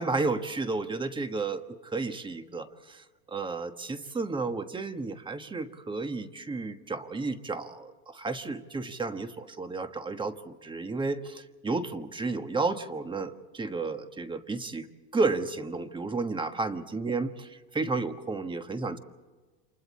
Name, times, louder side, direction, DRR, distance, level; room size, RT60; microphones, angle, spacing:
voice 1, 0.0-14.9 15.1-17.3 17.7-19.0, right 3 dB, 10° right, 8 dB, 1.3 m, -32 dB
29.5 x 26.5 x 4.2 m, 1.3 s
supercardioid pair, 135°, 39 cm